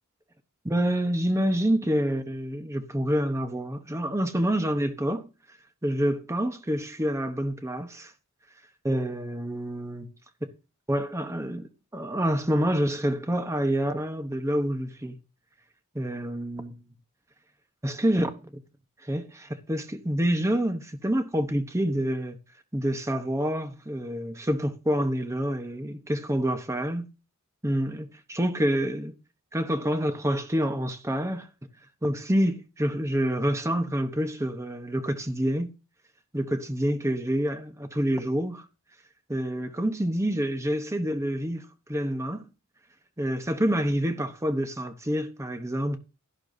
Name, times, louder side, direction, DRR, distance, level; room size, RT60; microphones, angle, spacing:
voice 1, 0.6-5.3 5.8-8.1 8.8-10.1 10.9-15.2 15.9-16.8 17.8-18.5 19.0-22.4 22.7-27.1 27.6-29.1 29.5-31.5 32.0-35.7 36.3-38.6 39.3-42.5 43.2-46.0, equal, 15° right, 0.9 m, -27 dB
12.0 x 11.5 x 2.7 m
head